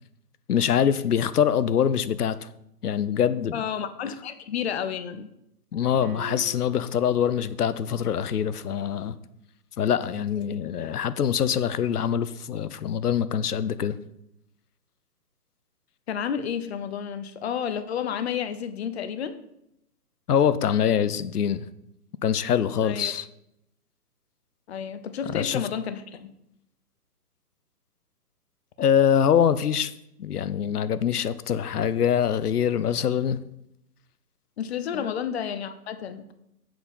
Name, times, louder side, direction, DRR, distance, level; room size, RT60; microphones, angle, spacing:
voice 1, 0.5-2.5 2.8-3.6 5.7-9.2 9.8-14.0 20.3-21.7 22.2-23.3 25.2-25.7 28.8-29.9 30.2-33.4 34.9-35.1, left 8 dB, 70° left, 0.8 m, -24 dB
voice 2, 3.5-5.3 16.1-19.4 22.8-23.1 24.7-26.3 34.6-36.3, left 8 dB, 40° left, 0.8 m, -31 dB
sound 1, 6.0-7.1, right 9 dB, 60° right, 1.0 m, -43 dB
7.7 x 6.6 x 5.4 m
hypercardioid pair, 140°, 47 cm